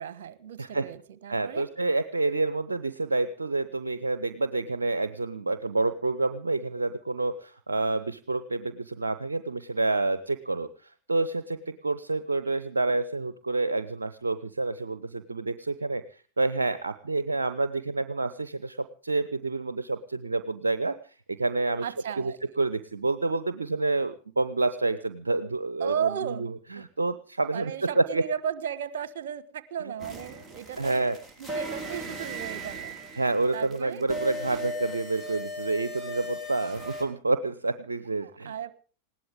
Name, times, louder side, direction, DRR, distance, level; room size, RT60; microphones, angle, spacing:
voice 1, 0.0-1.7 21.8-22.4 25.8-26.5 26.7-26.8 27.5-31.1 31.4-33.0 33.5-34.0 38.2-38.7, right 8 dB, 55° right, 16 dB, 1.3 m, -35 dB
voice 2, 1.3-16.0 16.4-21.0 21.3-21.9 22.2-28.2 29.8-29.9 30.8-31.2 33.1-38.5, right 3 dB, 75° right, 13 dB, 0.8 m, -28 dB
sound 1, 30.0-37.0, equal, 5° right, 4.2 m, -37 dB
20.0 x 17.0 x 3.5 m, 0.40 s
figure-of-eight pair, 90°, 0 cm